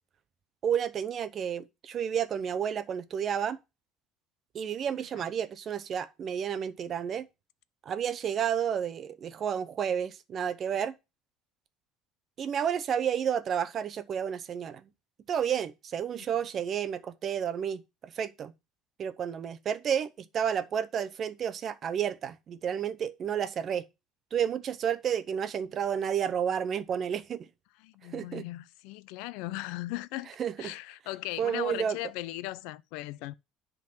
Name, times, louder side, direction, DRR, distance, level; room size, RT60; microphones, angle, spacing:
voice 1, 0.6-3.6 4.5-7.3 7.9-10.9 12.4-14.9 15.3-18.5 19.0-23.8 24.3-27.5 28.1-28.4 30.4-30.7 31.4-32.0, right 8 dB, 35° right, 0.7 m, -31 dB
voice 2, 27.8-30.3 30.6-33.3, left 17 dB, 80° left, 0.5 m, -38 dB
10.5 x 3.8 x 5.7 m
cardioid pair, 150°, 0 cm